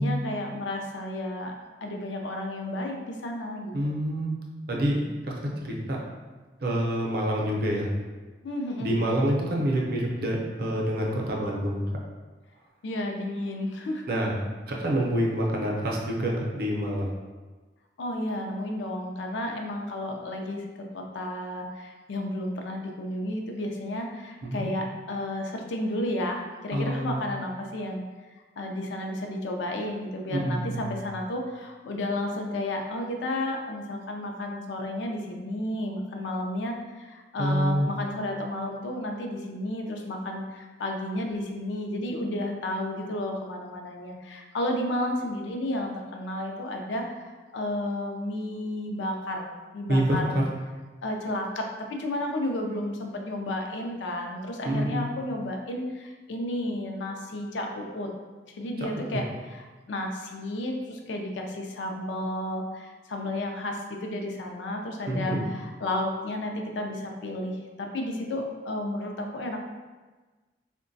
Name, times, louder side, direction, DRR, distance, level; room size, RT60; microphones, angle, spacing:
voice 1, 0.0-3.9 8.4-8.9 12.8-14.0 18.0-28.0 28.6-49.5 49.7-50.4 51.0-58.1 58.5-69.6, left 1 dB, 85° left, 3 dB, 0.4 m, -32 dB
voice 2, 3.7-4.4 4.7-5.3 5.6-6.0 6.6-7.9 8.8-11.9 14.1-14.3 14.7-17.1 24.4-24.7 26.7-27.1 30.3-30.9 37.4-38.1 49.9-50.4 54.7-55.1 65.1-65.4, equal, 55° right, -2 dB, 0.5 m, -27 dB
3.7 x 2.2 x 2.6 m, 1.3 s
head